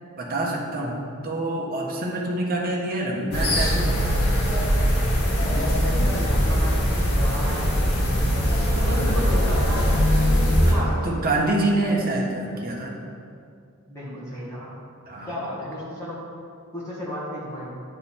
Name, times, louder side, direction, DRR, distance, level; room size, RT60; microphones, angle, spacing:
voice 1, 0.2-3.9 8.7-9.4 10.7-13.1 15.1-15.4, right 1 dB, 40° right, -2 dB, 1.2 m, -27 dB
sound 1, 3.3-10.7, equal, 85° left, 1.5 m, -21 dB
voice 2, 5.4-7.9 8.8-10.0 10.4-11.2 13.9-14.7 15.3-16.2 16.7-17.7, equal, 15° left, -9 dB, 1.7 m, -33 dB
10.0 x 4.1 x 4.2 m, 2.4 s
head